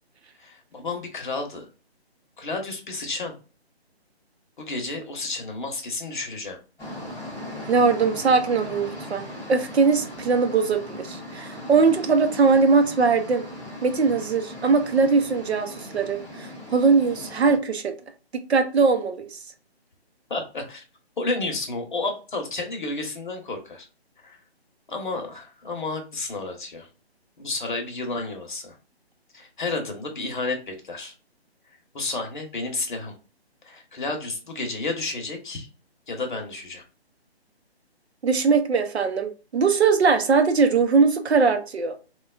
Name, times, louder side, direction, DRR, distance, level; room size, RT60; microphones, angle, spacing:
voice 1, 0.4-1.7 2.4-3.3 4.6-6.6 20.3-20.8 21.2-23.9 24.2-24.4 24.9-26.9 27.4-28.8 29.3-31.1 31.9-33.1 33.6-35.7 36.1-36.8, left 3 dB, 50° left, 0.8 m, -31 dB
sound 1, 6.8-17.6, left 1 dB, ahead, 0.6 m, -38 dB
voice 2, 7.7-13.4 13.8-17.9 18.5-19.4 38.2-42.0, right 4 dB, 75° right, 0.7 m, -21 dB
3.0 x 2.3 x 2.3 m
hypercardioid pair, 170°, 33 cm